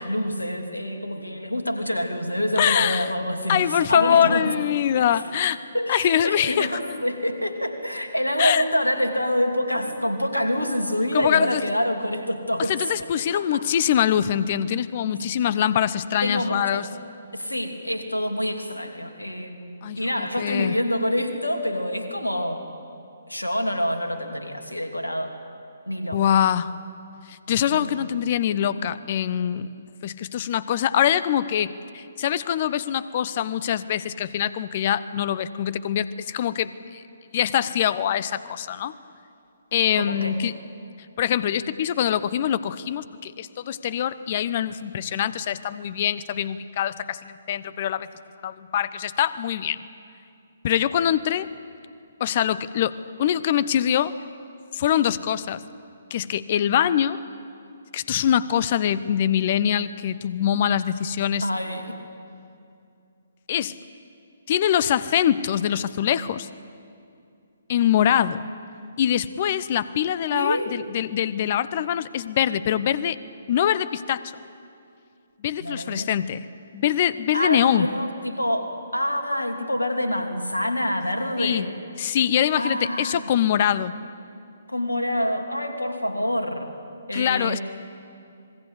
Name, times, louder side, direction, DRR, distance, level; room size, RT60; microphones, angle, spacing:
voice 1, 0.0-4.5 4.9-12.7 13.0-13.6 15.1-15.3 16.2-16.9 17.3-22.6 23.3-25.3 25.9-26.2 27.7-28.2 39.9-40.4 61.4-62.0 70.3-70.7 75.6-76.1 77.3-81.7 82.5-83.3 84.7-86.7 87.1-87.6, equal, 85° left, 4 dB, 2.9 m, -27 dB
voice 2, 2.6-3.1 3.5-5.6 5.9-6.7 8.4-8.6 11.1-11.6 12.7-16.9 19.8-20.7 26.1-26.7 27.3-29.7 30.0-37.0 37.3-38.9 39.7-40.5 41.2-48.1 48.4-49.9 50.6-51.5 52.2-54.1 54.7-55.6 56.1-57.2 57.9-61.5 63.5-63.7 64.5-66.5 67.7-68.4 69.0-73.2 73.5-74.3 75.4-76.5 76.7-77.9 81.4-81.7 82.0-83.9 87.1-87.6, left 10 dB, 40° left, 16 dB, 0.8 m, -23 dB
26.5 x 20.5 x 8.2 m, 2.5 s
figure-of-eight pair, 130°, 0 cm